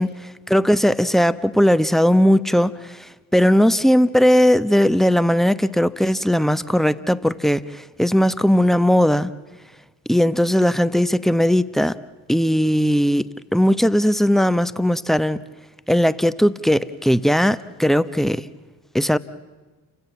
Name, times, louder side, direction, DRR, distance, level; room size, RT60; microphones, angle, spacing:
voice 1, 0.5-9.3 10.1-12.0 12.3-13.3 13.5-15.4 15.9-18.4 18.9-19.2, equal, ahead, 1.0 m, -18 dB
30.0 x 17.0 x 7.2 m
hypercardioid pair, 45°, 49 cm